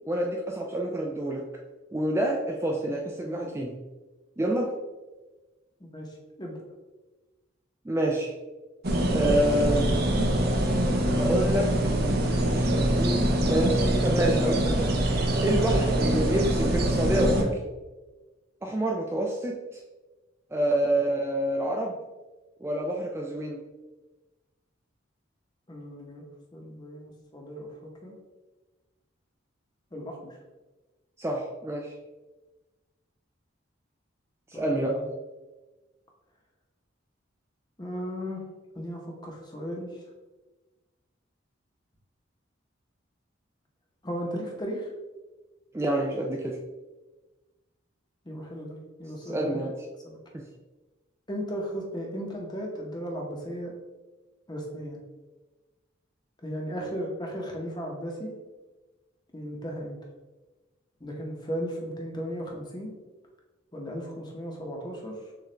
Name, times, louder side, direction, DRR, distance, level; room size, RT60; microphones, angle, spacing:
voice 1, 0.1-1.4 1.9-3.8 4.4-4.7 7.9-8.3 9.1-9.9 11.2-11.7 12.4-15.0 15.4-17.6 18.6-19.8 20.5-22.0 22.6-23.6 31.2-31.9 34.5-35.0 45.7-46.6 49.2-49.8 50.3-50.4, right 1 dB, 15° right, 0 dB, 0.3 m, -27 dB
voice 2, 2.9-3.5 5.8-6.6 25.7-26.2 26.5-28.1 29.9-30.2 34.5-35.1 37.8-38.4 38.7-40.0 44.0-44.9 48.2-49.6 50.0-50.2 51.3-53.7 54.5-55.0 56.4-58.3 59.3-60.0 61.0-62.9 63.7-65.2, equal, 20° left, -1 dB, 0.9 m, -36 dB
sound 1, 8.8-17.4, right 1 dB, 55° right, 0.6 m, -24 dB
6.6 x 2.4 x 3.2 m, 1.2 s
head